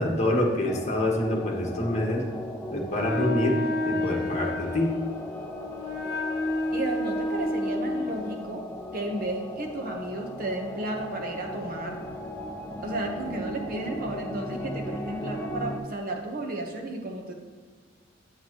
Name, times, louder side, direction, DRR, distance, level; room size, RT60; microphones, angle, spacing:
voice 1, 0.0-2.2 2.7-3.6 3.8-4.9, left 1 dB, 35° left, -1 dB, 1.4 m, -26 dB
sound 1, 0.6-15.8, left 1 dB, 10° left, 0.6 m, -37 dB
Wind instrument woodwind instrument, 2.9-8.5, left 2 dB, 55° left, 1.0 m, -30 dB
voice 2, 6.7-8.6 8.9-12.0 12.8-17.3, right 2 dB, 50° right, 2 dB, 1.1 m, -33 dB
8.7 x 7.2 x 3.0 m, 1.5 s
head